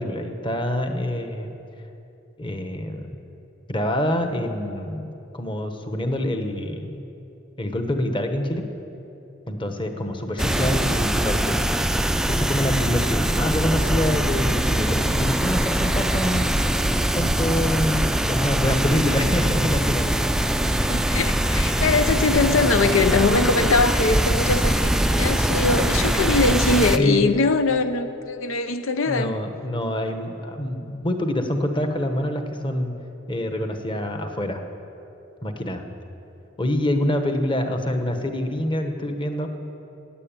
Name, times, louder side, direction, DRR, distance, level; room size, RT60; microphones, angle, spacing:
voice 1, 0.0-1.6 2.4-3.1 3.7-7.0 7.6-8.6 9.5-11.6 12.3-16.5 17.1-20.2 27.0-27.2 29.1-32.9 33.3-34.6 35.4-35.8 36.6-39.5, left 1 dB, 25° left, 1.1 m, -26 dB
voice 2, 10.4-10.7 20.6-29.4, left 3 dB, 85° left, 0.7 m, -22 dB
sound 1, 10.4-27.0, right 1 dB, 5° right, 0.4 m, -22 dB
14.5 x 9.7 x 9.0 m
head